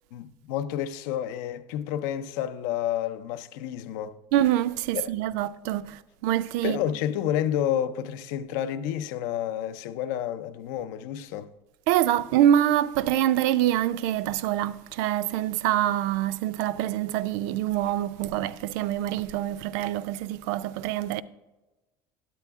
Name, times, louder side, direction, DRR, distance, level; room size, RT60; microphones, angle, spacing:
voice 1, 0.1-4.2 4.9-5.1 6.6-11.5, left 10 dB, 80° left, 0.5 m, -30 dB
voice 2, 4.3-6.8 11.9-21.2, right 12 dB, 75° right, 0.4 m, -25 dB
9.2 x 9.0 x 3.5 m
cardioid pair, 170°, 10 cm